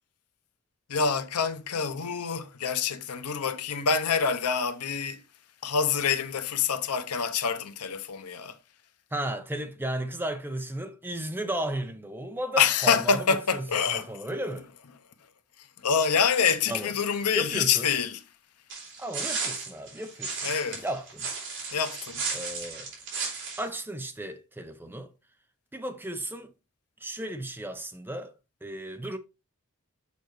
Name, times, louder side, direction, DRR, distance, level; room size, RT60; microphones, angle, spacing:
voice 1, 0.9-5.2 5.6-8.6 12.6-14.1 15.8-18.2 20.4-20.8 21.7-22.3, left 6 dB, 85° left, 0.8 m, -26 dB
voice 2, 9.1-13.3 13.5-14.7 16.7-16.9 17.3-17.9 19.0-20.5 20.8-21.3 22.3-22.9 23.6-25.1 25.7-26.5 27.0-28.3 28.6-29.2, right 1 dB, 10° right, 0.7 m, -34 dB
sound 1, 18.7-23.7, right 4 dB, 60° right, 3.3 m, -34 dB
6.8 x 5.3 x 3.1 m
head